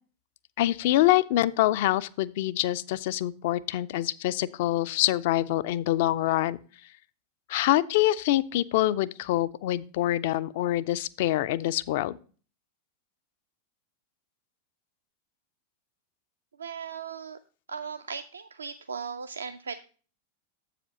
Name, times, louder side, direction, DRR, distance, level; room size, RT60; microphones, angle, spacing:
voice 1, 0.6-6.6 7.5-12.2, left 15 dB, 50° left, 16 dB, 0.4 m, -25 dB
voice 2, 16.6-17.4 17.7-19.8, right 6 dB, 75° right, 8 dB, 0.4 m, -37 dB
7.8 x 4.9 x 5.6 m, 0.39 s
figure-of-eight pair, 90°, 0 cm